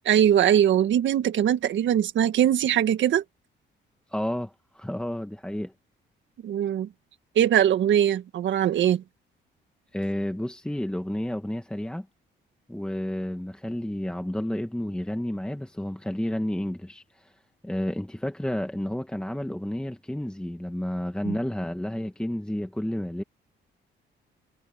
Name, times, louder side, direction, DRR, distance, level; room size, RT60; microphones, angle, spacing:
voice 1, 0.0-3.2 6.4-6.9 7.3-9.0 21.2-21.4, right 10 dB, 70° right, 1.7 m, -21 dB
voice 2, 4.1-5.7 9.9-12.1 12.7-17.3 17.6-23.2, left 1 dB, 5° left, 1.6 m, -31 dB
cardioid pair, 90°, 20 cm